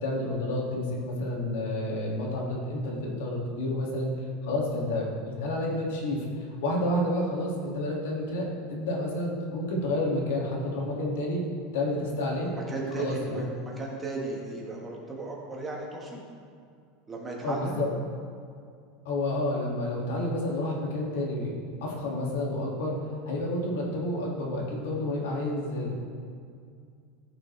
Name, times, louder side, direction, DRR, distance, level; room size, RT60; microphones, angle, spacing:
voice 1, 0.0-4.1 4.4-11.4 11.7-12.5 13.0-13.4 17.4-17.9 19.1-23.0 23.3-25.9, left 1 dB, 80° left, -2 dB, 2.2 m, -30 dB
voice 2, 12.7-16.2 17.1-17.8, right 3 dB, 10° right, -2 dB, 1.5 m, -35 dB
14.0 x 6.1 x 3.3 m, 2.2 s
supercardioid pair, 160°, 0 cm